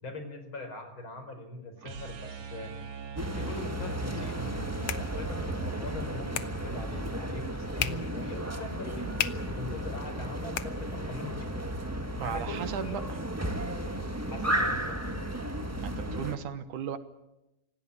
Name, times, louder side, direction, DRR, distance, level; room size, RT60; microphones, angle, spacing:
voice 1, 0.0-2.7 3.3-9.1 9.4-11.8 12.2-13.0 14.3-15.0, left 2 dB, 40° left, 7 dB, 5.1 m, -41 dB
sound 1, 1.8-7.9, right 6 dB, 60° right, 3.0 m, -43 dB
sound 2, 3.2-16.4, right 1 dB, 15° right, 0.4 m, -34 dB
sound 3, 4.3-11.4, left 11 dB, 65° left, 1.7 m, -40 dB
voice 2, 12.1-13.0 15.8-17.0, right 9 dB, 75° right, 11 dB, 2.7 m, -36 dB
26.5 x 17.5 x 9.9 m, 0.92 s
omnidirectional pair, 3.7 m